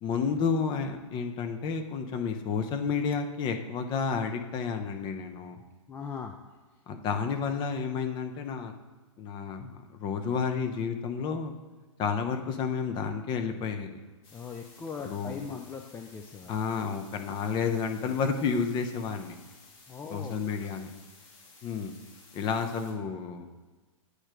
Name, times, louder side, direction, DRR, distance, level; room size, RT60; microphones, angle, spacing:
voice 1, 0.0-5.6 6.9-8.7 9.2-11.5 12.0-14.0 15.0-15.5 16.5-19.4 20.1-20.9 21.6-21.9 22.3-23.5, left 5 dB, 30° left, 6 dB, 0.8 m, -31 dB
voice 2, 5.9-6.3 14.3-16.5 19.9-20.4, left 6 dB, 10° left, 3 dB, 0.4 m, -39 dB
sound 1, 14.2-22.9, left 3 dB, 50° left, 2.2 m, -55 dB
8.6 x 3.2 x 4.9 m, 1.3 s
hypercardioid pair, 125°, 17 cm